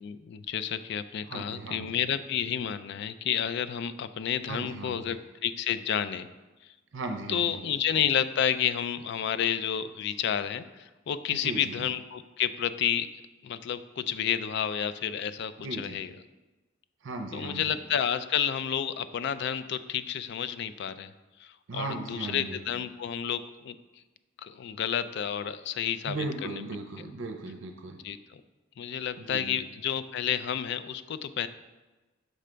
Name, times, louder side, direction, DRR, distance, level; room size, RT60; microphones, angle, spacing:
voice 1, 0.0-6.3 7.3-13.1 13.4-15.5 15.8-16.1 17.3-21.1 21.4-23.8 24.4-26.6 28.0-28.4 28.8-31.5, left 9 dB, 60° left, 13 dB, 0.3 m, -30 dB
voice 2, 1.3-1.9 4.5-5.0 6.9-7.5 11.3-11.8 15.6-16.0 17.0-17.8 21.7-22.6 26.0-28.0 29.2-29.6, right 2 dB, 75° right, 5 dB, 0.5 m, -37 dB
6.5 x 3.3 x 5.0 m, 1.1 s
head